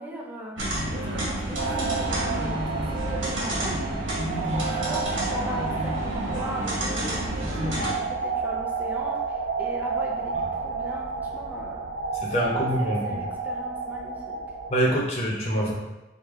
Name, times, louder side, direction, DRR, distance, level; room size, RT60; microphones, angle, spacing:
voice 1, 0.0-3.9 4.3-11.9 12.4-12.5 12.8-14.4, equal, 10° right, -2 dB, 0.5 m, -38 dB
sound 1, 0.6-7.9, right 1 dB, 80° right, 1.2 m, -29 dB
sound 2, 1.6-14.9, right 4 dB, 65° right, 0.5 m, -31 dB
voice 2, 12.2-13.2 14.7-15.7, equal, 35° left, -3 dB, 0.7 m, -25 dB
4.9 x 2.2 x 3.6 m, 1.0 s
head